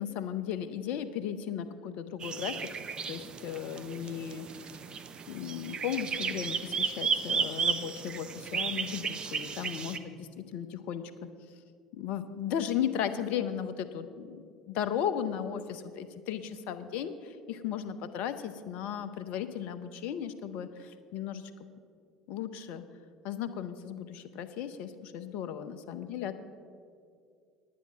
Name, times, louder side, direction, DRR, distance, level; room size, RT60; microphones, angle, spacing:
voice 1, 0.0-2.6 3.1-4.7 5.3-11.0 11.9-21.5 22.3-22.8 23.2-26.4, left 9 dB, 55° left, 11 dB, 0.7 m, -36 dB
sound 1, 2.2-10.0, right 6 dB, 35° right, 0.8 m, -34 dB
10.0 x 9.4 x 6.3 m, 2.2 s
figure-of-eight pair, 65°, 3 cm